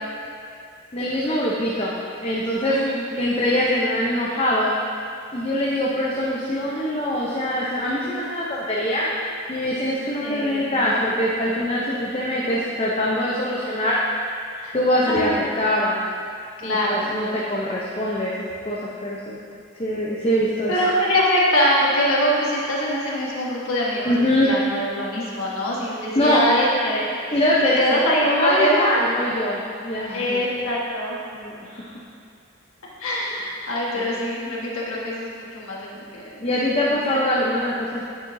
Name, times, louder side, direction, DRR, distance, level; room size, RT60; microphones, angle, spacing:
voice 1, 0.9-2.0 2.2-2.8 3.1-4.7 5.3-9.1 9.5-14.0 14.7-15.3 15.6-16.0 16.6-18.4 18.6-19.4 19.8-20.9 24.0-24.5 26.2-26.4 27.3-30.4 31.3-31.9 34.0-34.1 36.4-38.0, left 1 dB, 25° left, -6 dB, 0.6 m, -23 dB
voice 2, 2.7-3.0 10.2-10.9 14.6-14.8 15.1-15.5 16.6-17.1 20.7-24.1 24.4-27.4 27.6-29.0 30.1-31.2 33.0-36.4 37.0-37.2, equal, 75° left, -5 dB, 1.4 m, -23 dB
9.0 x 6.8 x 2.7 m, 2.3 s
head